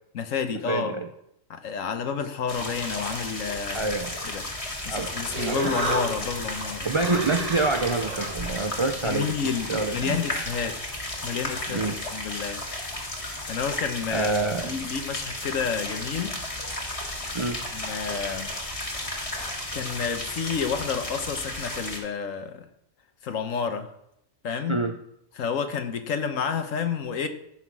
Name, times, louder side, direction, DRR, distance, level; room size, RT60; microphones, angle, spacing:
voice 1, 0.1-1.0 1.5-4.0 4.2-4.4 4.8-6.9 9.0-10.8 11.2-12.6 13.5-14.3 14.6-16.4 17.7-18.5 19.7-22.7 23.2-23.9 24.4-24.9 25.4-27.3, left 6 dB, 80° left, 8 dB, 1.4 m, -30 dB
voice 2, 0.7-1.1 3.7-4.1 4.9-5.1 5.4-5.7 6.8-10.2 11.7-12.0 14.1-14.7 17.3-17.6 24.7-24.9, right 3 dB, 50° right, 6 dB, 0.3 m, -27 dB
sound 1, 2.5-22.0, left 1 dB, 25° left, 1.6 m, -34 dB
Human voice, 4.9-10.1, right 2 dB, 30° right, 1.3 m, -33 dB
15.5 x 5.9 x 4.7 m, 0.78 s
omnidirectional pair, 1.3 m